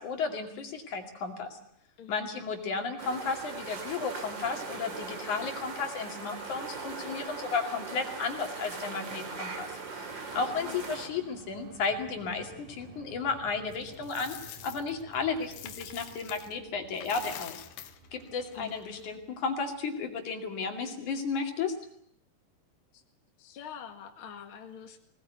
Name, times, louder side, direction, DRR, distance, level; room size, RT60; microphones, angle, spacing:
voice 1, 0.0-1.6 2.1-10.0 10.3-17.7 18.1-21.7, left 5 dB, 65° left, 4 dB, 3.9 m, -33 dB
voice 2, 2.0-2.3 10.5-10.8 18.6-19.0 22.9-23.0 23.4-25.0, left 8 dB, 45° left, 4 dB, 2.4 m, -46 dB
sound 1, 3.0-11.1, right 4 dB, 35° right, 3.2 m, -40 dB
sound 2, 3.4-20.1, right 4 dB, 70° right, 3.9 m, -54 dB
Coin (dropping), 13.7-16.6 16.9-19.2, left 11 dB, 85° left, 2.8 m, -46 dB
21.5 x 18.5 x 9.4 m, 0.70 s
omnidirectional pair, 3.7 m